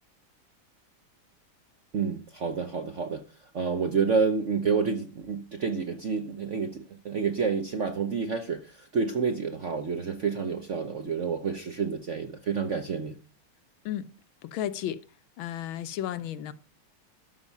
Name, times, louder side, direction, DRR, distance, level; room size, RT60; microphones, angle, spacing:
voice 1, 1.9-3.2 3.5-13.1, right 5 dB, 55° right, 0.8 m, -29 dB
voice 2, 14.4-15.0 15.4-16.5, left 11 dB, 75° left, 1.4 m, -33 dB
13.0 x 5.8 x 5.4 m
omnidirectional pair, 2.3 m